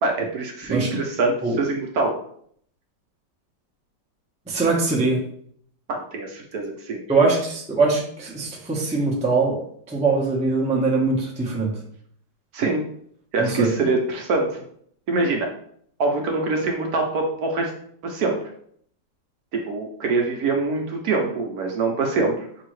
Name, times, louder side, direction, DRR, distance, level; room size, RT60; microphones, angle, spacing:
voice 1, 0.0-2.1 5.9-7.0 12.5-12.9 13.3-14.6 15.1-15.5 16.0-17.7 18.0-18.4 19.5-22.5, right 3 dB, 65° right, 2 dB, 1.0 m, -24 dB
voice 2, 4.5-5.2 7.1-9.6 9.9-11.8 13.4-13.7, right 3 dB, 10° right, -3 dB, 0.4 m, -22 dB
5.8 x 2.7 x 3.1 m, 0.64 s
omnidirectional pair, 2.0 m